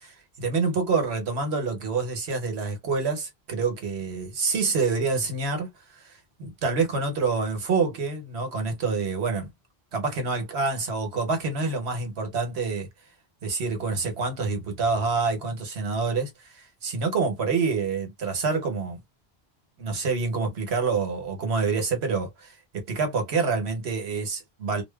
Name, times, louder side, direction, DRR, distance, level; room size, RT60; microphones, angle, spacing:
voice 1, 0.0-5.7 5.9-9.5 9.9-12.9 13.4-19.0 19.8-24.8, right 4 dB, 80° right, 1.2 m, -27 dB
2.7 x 2.1 x 2.2 m
omnidirectional pair, 1.1 m